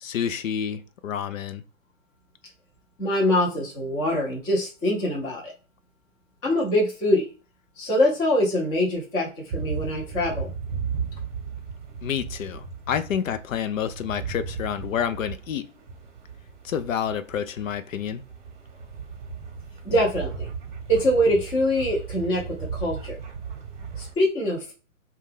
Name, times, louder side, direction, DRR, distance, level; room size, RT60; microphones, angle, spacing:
voice 1, 0.0-1.6 12.0-15.7 16.6-18.2, left 8 dB, 75° left, 0.5 m, -29 dB
voice 2, 3.0-5.5 6.4-7.3 7.8-10.5 19.8-20.5 20.9-23.2 24.0-24.7, equal, 10° left, 0.5 m, -24 dB
sound 1, 9.5-24.1, right 6 dB, 35° right, 0.9 m, -36 dB
2.5 x 2.3 x 3.4 m
hypercardioid pair, 135°, 40 cm